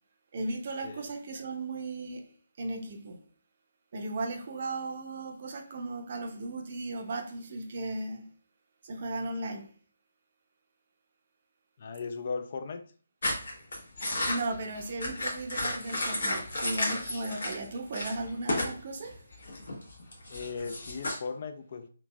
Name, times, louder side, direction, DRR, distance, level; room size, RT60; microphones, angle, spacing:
voice 1, 0.3-2.3 2.6-3.2 3.9-8.2 8.8-9.7 14.3-19.2, right 2 dB, 45° right, 0.5 m, -36 dB
voice 2, 11.8-12.8 20.3-21.9, left 5 dB, 45° left, 0.3 m, -37 dB
sound 1, 13.2-17.6 17.9-18.8 19.0-21.2, left 1 dB, 60° left, 1.0 m, -33 dB
2.9 x 2.6 x 2.2 m
figure-of-eight pair, 145°, 0 cm